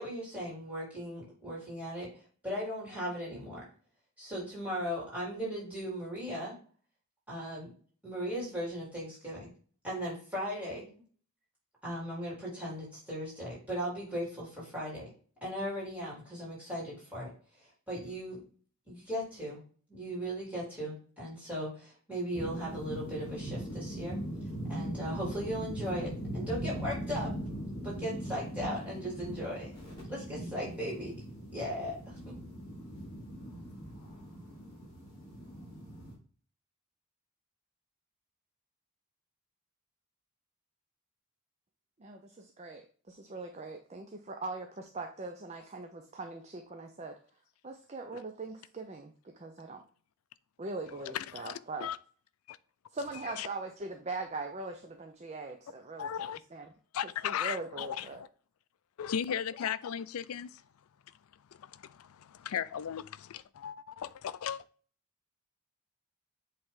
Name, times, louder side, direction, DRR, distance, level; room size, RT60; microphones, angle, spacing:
voice 1, 0.0-2.1 2.4-3.6 4.2-6.5 7.3-7.7 8.0-9.5 9.8-10.9 11.8-15.1 15.4-17.3 17.9-18.4 18.9-19.6 19.9-24.2 24.7-27.3 27.8-29.7 30.1-31.1 31.5-32.3, equal, 5° right, 3.5 m, -37 dB
sound 1, 22.3-36.1, right 1 dB, 20° left, 3.5 m, -40 dB
voice 2, 42.0-47.2 47.6-49.8 50.6-51.9 52.9-56.7 57.2-58.3, right 3 dB, 30° right, 0.5 m, -41 dB
voice 3, 51.0-52.0 52.5-52.6 53.4-53.5 56.0-56.4 56.9-58.3 59.0-60.6 61.6-64.6, left 9 dB, 75° left, 0.4 m, -36 dB
7.9 x 3.6 x 3.7 m
head